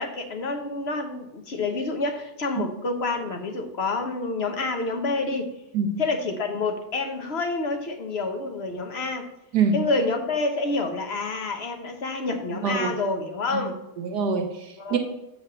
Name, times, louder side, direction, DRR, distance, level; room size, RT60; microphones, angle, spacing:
voice 1, 0.0-5.5 6.0-9.3 9.7-13.8 14.8-15.0, left 3 dB, 45° left, 5 dB, 1.0 m, -28 dB
voice 2, 14.0-15.0, right 5 dB, 85° right, 4 dB, 1.7 m, -24 dB
7.4 x 4.8 x 6.6 m, 0.95 s
omnidirectional pair, 1.7 m